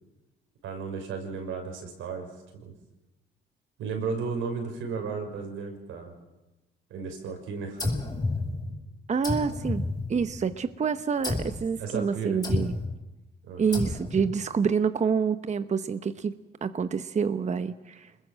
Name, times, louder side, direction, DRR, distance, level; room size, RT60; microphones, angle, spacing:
voice 1, 0.6-2.3 2.5-2.7 3.8-6.1 6.9-8.0 11.8-12.4 13.4-14.0, right 5 dB, 90° right, 3 dB, 6.3 m, -34 dB
sound 1, 7.8-8.8 9.2-10.5 11.2-11.7 12.4-13.0 13.7-14.4, left 2 dB, 20° left, 7.5 m, -30 dB
voice 2, 9.1-12.8 13.6-16.3 16.6-18.1, right 6 dB, 35° right, 10 dB, 1.0 m, -27 dB
27.0 x 21.5 x 7.6 m, 1.0 s
cardioid pair, 90°, 20 cm